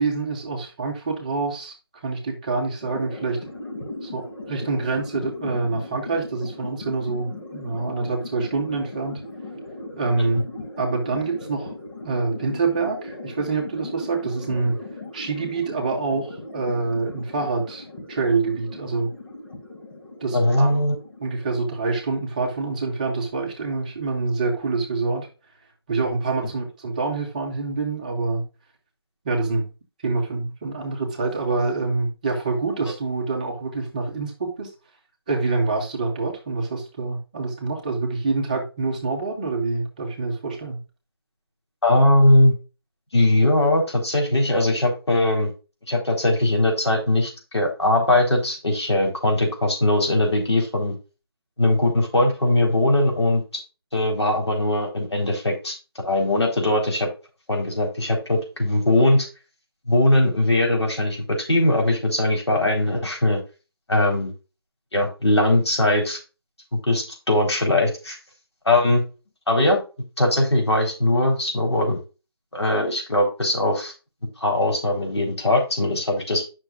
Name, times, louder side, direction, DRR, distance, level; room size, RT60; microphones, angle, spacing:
voice 1, 0.0-1.7 2.0-3.4 4.0-9.2 9.9-10.5 10.8-11.7 12.0-14.7 15.1-19.1 20.2-20.8 21.2-25.3 25.9-28.4 29.2-29.7 30.0-34.7 35.3-40.8, right 3 dB, 20° right, 0 dB, 1.1 m, -26 dB
sound 1, 2.8-22.3, left 2 dB, 55° left, 3.0 m, -38 dB
voice 2, 20.3-20.9 41.8-42.5 43.1-45.5 45.9-51.0 51.6-53.4 53.9-55.7 56.0-57.1 57.5-59.3 59.9-63.4 63.9-64.3 64.9-66.2 66.7-68.2 68.6-69.0 69.5-69.8 70.2-72.0 72.5-73.9 74.4-76.4, left 1 dB, 90° left, 1 dB, 4.0 m, -20 dB
10.0 x 6.1 x 2.4 m, 0.31 s
figure-of-eight pair, 170°, 14 cm